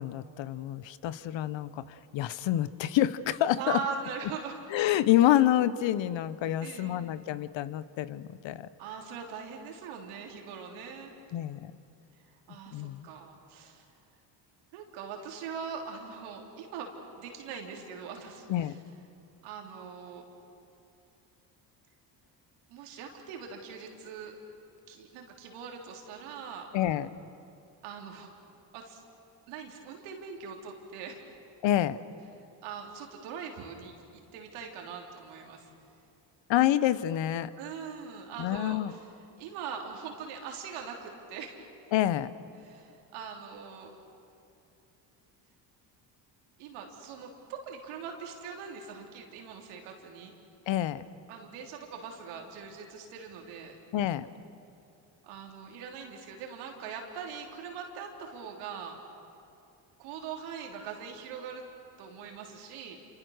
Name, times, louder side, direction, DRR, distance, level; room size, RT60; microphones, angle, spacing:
voice 1, 0.0-3.8 4.7-8.7 11.3-11.7 12.7-13.1 18.5-18.8 26.7-27.1 31.6-32.0 36.5-37.5 38.4-38.9 41.9-42.3 50.7-51.0 53.9-54.3, left 12 dB, 65° left, 16 dB, 1.1 m, -27 dB
voice 2, 3.6-4.5 6.6-7.1 8.8-11.1 12.5-13.9 14.7-18.8 19.4-20.2 22.7-24.4 24.9-26.7 27.8-28.3 28.7-29.0 29.5-31.2 32.6-35.7 37.6-39.0 39.4-41.6 42.6-44.0 46.6-50.3 51.3-53.7 55.2-59.0 60.0-61.6 62.0-63.0, right 6 dB, 85° right, 2 dB, 3.5 m, -41 dB
28.0 x 26.5 x 6.5 m, 2.7 s
supercardioid pair, 75°, 49 cm